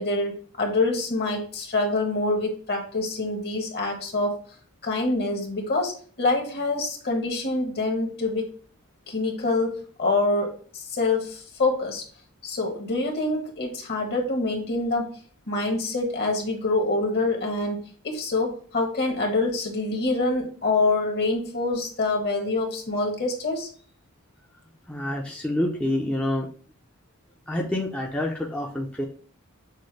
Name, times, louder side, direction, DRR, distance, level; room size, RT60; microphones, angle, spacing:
voice 1, 0.0-4.4 4.8-8.5 9.1-12.0 12.4-15.2 15.5-17.8 18.0-23.7, left 2 dB, 50° left, 2 dB, 1.2 m, -26 dB
voice 2, 24.9-26.5 27.5-29.1, left 1 dB, 5° left, -2 dB, 0.6 m, -27 dB
6.3 x 2.2 x 3.2 m, 0.42 s
head